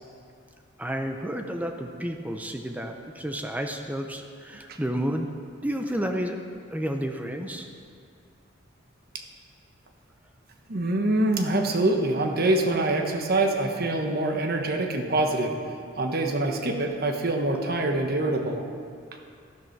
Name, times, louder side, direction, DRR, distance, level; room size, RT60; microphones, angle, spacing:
voice 1, 0.8-5.3 5.6-6.4 6.7-7.7, equal, 10° right, 4 dB, 0.6 m, -31 dB
voice 2, 10.7-15.5 16.0-18.6, right 2 dB, 55° right, 4 dB, 1.2 m, -25 dB
13.0 x 12.0 x 4.7 m, 2.3 s
head